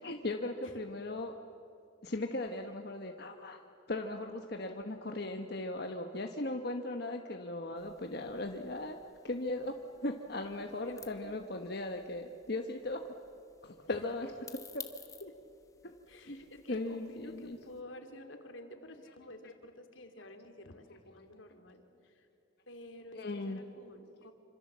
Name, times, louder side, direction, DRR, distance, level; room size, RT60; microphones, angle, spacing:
voice 1, 0.0-1.3 2.0-3.6 3.9-9.0 9.2-9.8 10.0-13.0 13.6-14.8 15.8-15.9 16.3-16.4 16.7-17.6 23.2-23.6, left 2 dB, 55° left, 4 dB, 1.2 m, -38 dB
sound 1, 7.8-17.8, left 6 dB, 15° left, 1.2 m, -56 dB
voice 2, 10.6-11.4 13.9-14.0 15.2-15.5 16.1-22.3 22.7-24.3, left 1 dB, 85° left, 6 dB, 2.7 m, -51 dB
26.5 x 25.5 x 7.4 m, 2.6 s
head